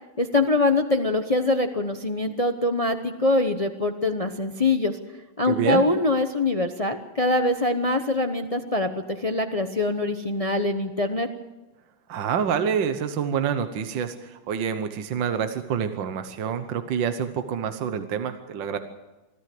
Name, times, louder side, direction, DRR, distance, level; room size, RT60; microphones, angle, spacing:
voice 1, 0.2-5.0 5.4-11.3, left 2 dB, 40° left, 7 dB, 0.5 m, -23 dB
voice 2, 5.5-5.8 12.1-18.8, right 7 dB, 65° right, 9 dB, 1.7 m, -27 dB
25.0 x 14.0 x 7.8 m, 1.1 s
omnidirectional pair, 2.2 m